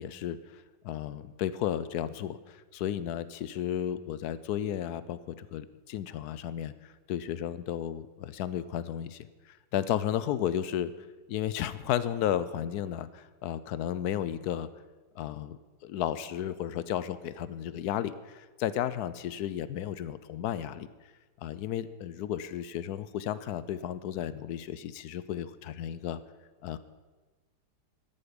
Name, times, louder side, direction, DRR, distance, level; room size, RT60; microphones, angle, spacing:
voice 1, 0.0-10.9 11.3-14.7 15.2-20.9 21.4-26.2 26.6-26.8, left 10 dB, 75° left, 15 dB, 1.0 m, -33 dB
13.0 x 11.0 x 5.2 m, 1.3 s
omnidirectional pair, 1.8 m